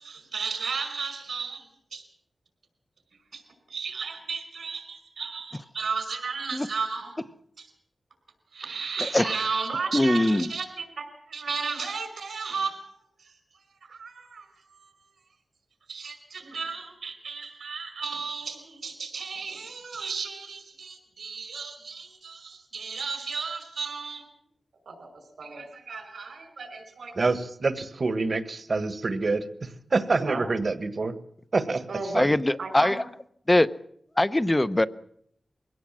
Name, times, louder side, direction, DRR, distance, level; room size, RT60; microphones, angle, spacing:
voice 1, 0.0-2.0 3.3-3.4 3.7-7.2 7.6-7.7 8.5-12.9 13.2-13.4 13.8-14.9 15.9-24.3 24.9-27.2 30.2-30.4 31.9-32.2 32.6-33.0, right 5 dB, 90° right, 5.2 m, -34 dB
voice 2, 9.9-10.5 32.1-33.0 33.5-33.7 34.2-34.9, left 1 dB, 20° left, 0.8 m, -22 dB
voice 3, 27.2-31.1 31.5-31.9 32.1-32.3, right 3 dB, 55° right, 1.6 m, -27 dB
23.0 x 17.5 x 7.5 m
wide cardioid pair, 95°, 0 cm